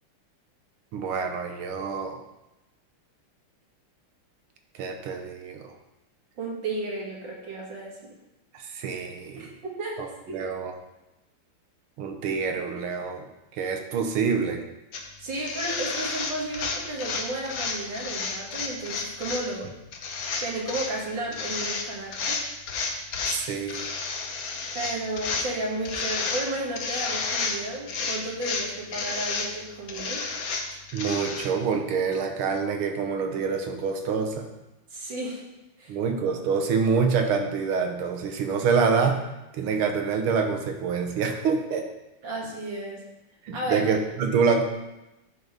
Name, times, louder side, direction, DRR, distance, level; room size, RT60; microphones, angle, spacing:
voice 1, 0.9-2.2 4.8-5.7 8.5-9.5 10.0-10.1 10.3-10.8 12.0-13.3 13.6-14.6 23.2-23.9 30.9-34.5 35.9-39.2 39.5-41.9 43.5-44.6, right 5 dB, 90° right, 5 dB, 1.8 m, -26 dB
voice 2, 6.4-8.0 9.4-9.5 9.8-10.0 10.3-10.4 15.2-19.7 20.4-22.4 24.7-30.2 34.9-35.4 35.8-36.0 42.2-43.0 43.5-43.8, right 2 dB, 60° right, -3 dB, 2.5 m, -33 dB
sound 1, 14.9-15.0 15.3-19.4 19.9-20.9 21.3-21.9 22.1-23.4 23.7-25.5 25.8-26.5 26.8-27.6 27.9-29.5 29.9-31.5, left 4 dB, 55° left, 1.1 m, -31 dB
10.5 x 4.0 x 5.1 m, 0.96 s
omnidirectional pair, 2.3 m